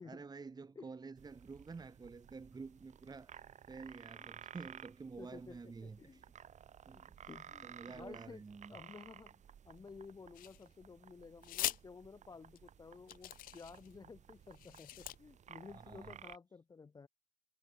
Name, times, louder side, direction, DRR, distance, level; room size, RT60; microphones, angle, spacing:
voice 1, 0.0-6.2 6.9-7.3 7.6-8.8 15.6-16.2, right 4 dB, 25° right, 2.4 m, -50 dB
sound 1, 1.2-16.4, right 8 dB, 45° right, 1.9 m, -56 dB
voice 2, 5.2-6.2 6.9-8.4 8.7-17.1, left 4 dB, 20° left, 0.7 m, -54 dB
sound 2, 10.3-10.9 11.4-11.8 12.6-12.7 13.1-13.9 14.5-15.2, left 15 dB, 55° left, 0.4 m, -41 dB
cardioid pair, 110°, 17 cm